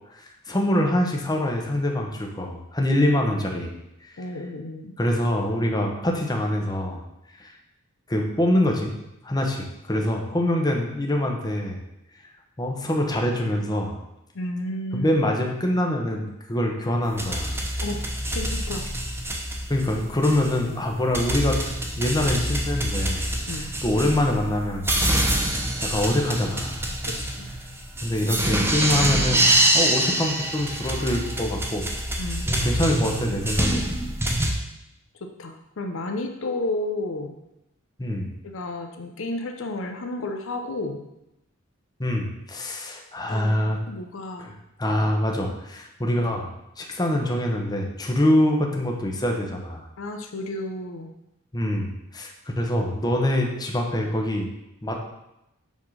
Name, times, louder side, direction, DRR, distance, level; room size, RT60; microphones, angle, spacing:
voice 1, 0.1-3.7 5.0-7.0 7.4-7.5 8.1-8.9 9.2-11.8 12.6-14.0 14.9-17.6 19.7-21.6 22.0-23.2 23.5-25.0 25.8-26.8 28.0-29.4 29.7-31.9 32.5-33.8 34.3-34.4 38.0-38.3 42.0-43.8 44.4-46.5 46.8-49.8 51.5-54.5 54.8-55.0, left 1 dB, 20° left, 1 dB, 1.0 m, -24 dB
voice 2, 4.2-4.9 10.4-10.5 14.3-15.2 17.8-18.1 18.3-18.8 23.5-23.7 27.0-27.5 32.2-32.5 35.4-37.3 38.4-41.0 43.3-44.5 50.0-51.1, left 2 dB, 65° left, 4 dB, 0.6 m, -32 dB
sound 1, 17.0-34.5, right 1 dB, 10° right, 0.8 m, -26 dB
7.2 x 3.7 x 6.3 m, 0.87 s
head